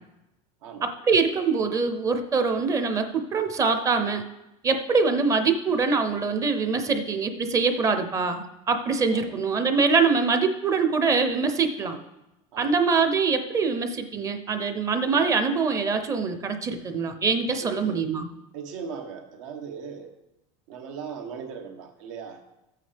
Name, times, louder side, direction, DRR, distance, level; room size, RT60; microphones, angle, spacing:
voice 1, 0.8-4.2 4.6-12.0 12.6-18.3, right 4 dB, 20° right, 7 dB, 0.6 m, -24 dB
voice 2, 17.6-18.0 18.5-20.1 20.7-22.4, right 6 dB, 80° right, 4 dB, 1.5 m, -38 dB
14.0 x 8.4 x 3.4 m, 0.94 s
cardioid pair, 170°, 17 cm